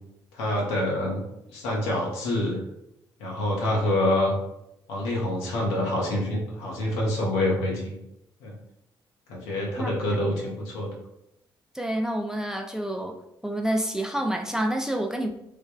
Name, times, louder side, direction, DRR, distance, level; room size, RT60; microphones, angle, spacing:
voice 1, 0.3-1.2 1.5-2.6 3.2-4.3 4.9-7.9 8.4-8.5 9.3-10.9, left 1 dB, 80° left, -2 dB, 0.7 m, -26 dB
voice 2, 11.7-13.2 13.4-15.4, right 1 dB, 5° right, 5 dB, 0.4 m, -28 dB
3.3 x 2.1 x 2.3 m, 0.84 s
hypercardioid pair, 40°, 11 cm